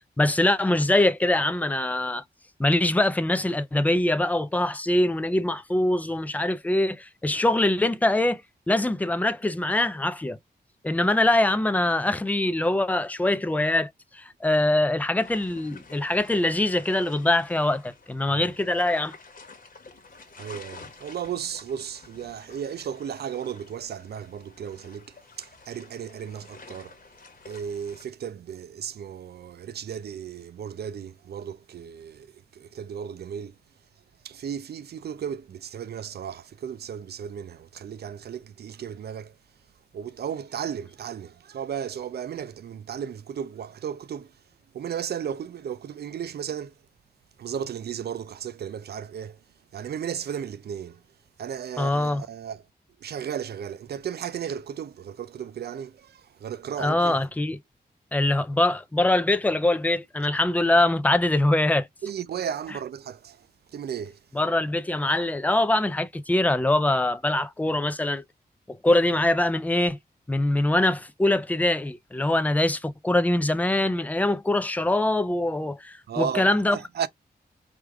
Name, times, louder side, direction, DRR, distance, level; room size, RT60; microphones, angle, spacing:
voice 1, 0.2-2.2 2.6-8.4 8.7-10.4 10.8-19.1 51.8-52.2 56.8-57.6 58.1-61.9 64.4-68.2 68.7-70.0 70.3-76.8, left 1 dB, 10° left, 0.4 m, -23 dB
sound 1, 15.2-28.1, left 4 dB, 55° left, 1.1 m, -49 dB
voice 2, 20.3-27.0 27.5-33.6 34.0-39.4 39.9-44.4 44.7-46.8 47.4-49.4 49.7-51.0 51.4-52.7 53.0-57.2 62.0-64.3 76.1-77.1, right 8 dB, 70° right, 0.4 m, -35 dB
4.8 x 2.4 x 3.4 m
wide cardioid pair, 145°, 17 cm